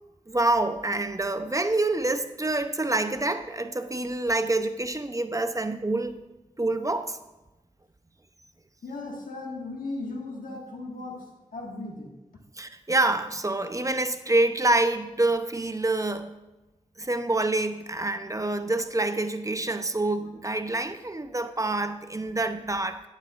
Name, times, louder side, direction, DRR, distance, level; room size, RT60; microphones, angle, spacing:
voice 1, 0.3-6.2 6.6-7.2 12.6-16.3 17.0-23.0, right 2 dB, 25° right, 9 dB, 0.7 m, -27 dB
voice 2, 8.8-11.3 11.5-12.1, left 2 dB, 85° left, 1 dB, 1.7 m, -36 dB
12.0 x 10.5 x 2.5 m, 1.1 s
cardioid pair, 50°, 14 cm